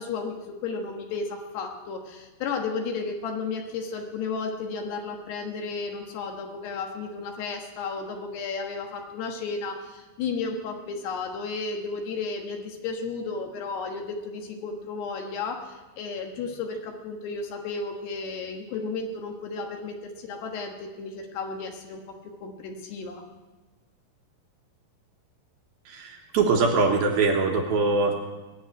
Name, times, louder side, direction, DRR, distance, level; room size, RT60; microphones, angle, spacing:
voice 1, 0.0-22.0 22.4-23.2, left 4 dB, 70° left, 3 dB, 3.2 m, -33 dB
voice 2, 25.9-28.1, right 4 dB, 70° right, 2 dB, 2.6 m, -23 dB
20.5 x 7.2 x 9.7 m, 1.2 s
omnidirectional pair, 5.1 m